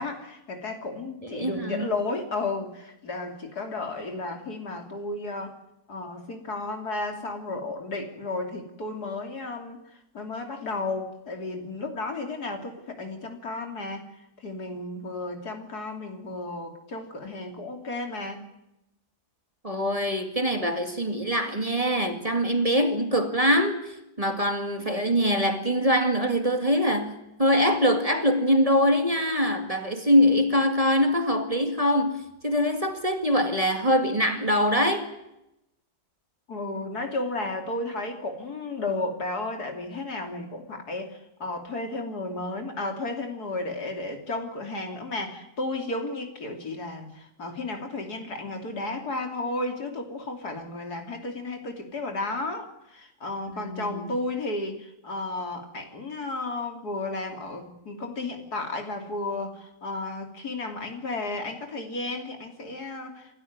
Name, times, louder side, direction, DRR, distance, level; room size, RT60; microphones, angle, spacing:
voice 1, 0.0-5.6 5.9-9.8 10.1-14.0 14.4-18.4 36.5-63.3, left 2 dB, 70° left, 3.5 m, -33 dB
voice 2, 1.2-1.9 19.6-35.1 53.5-54.0, equal, 20° right, 2.0 m, -23 dB
27.0 x 13.0 x 9.6 m
omnidirectional pair, 1.7 m